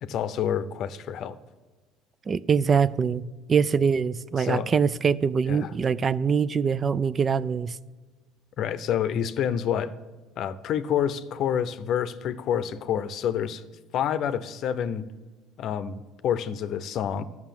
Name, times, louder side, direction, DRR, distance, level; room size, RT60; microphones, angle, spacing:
voice 1, 0.0-1.4 4.4-4.7 5.5-5.7 8.6-9.9 10.4-13.6 13.9-15.0 15.6-17.2, left 9 dB, 55° left, 0.7 m, -28 dB
voice 2, 2.3-3.2 3.5-7.8, right 6 dB, 35° right, 0.3 m, -23 dB
11.5 x 6.1 x 7.4 m
supercardioid pair, 95°, 0 cm